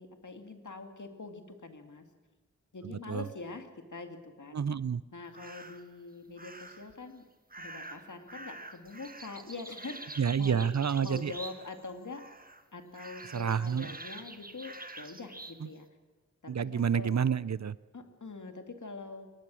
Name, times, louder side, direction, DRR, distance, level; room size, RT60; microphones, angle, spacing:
voice 1, 0.0-2.1 2.7-4.6 5.1-7.2 7.6-10.7 11.0-12.2 12.7-15.9 16.4-17.1 17.9-19.3, left 3 dB, 75° left, 5 dB, 2.0 m, -44 dB
voice 2, 2.8-3.3 4.5-5.0 10.2-11.3 13.3-14.0 15.6-15.7 16.5-17.8, right 7 dB, 65° right, 18 dB, 0.6 m, -29 dB
sound 1, 5.3-5.9 6.4-6.9 7.5-11.8 12.1-12.6 12.9-15.6, right 2 dB, 30° right, 1.4 m, -47 dB
22.5 x 18.5 x 6.2 m, 1.3 s
wide cardioid pair, 50°, 30 cm